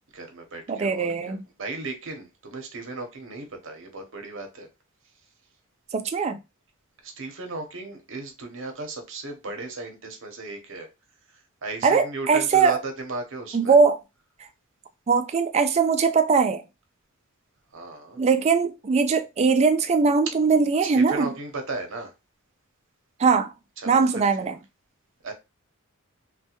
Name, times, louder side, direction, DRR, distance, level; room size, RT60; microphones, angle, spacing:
voice 1, 0.1-4.7 7.0-10.9 11.3-13.8 17.7-18.2 20.8-22.1 23.8-24.0 24.4-24.5 25.2-25.3, right 3 dB, 60° right, 0.8 m, -36 dB
voice 2, 0.7-1.4 5.9-6.4 11.8-12.8 13.5-14.0 15.1-16.6 18.2-21.3 23.2-23.5 23.9-24.6, right 5 dB, 30° right, 0.3 m, -21 dB
3.2 x 2.2 x 2.9 m
head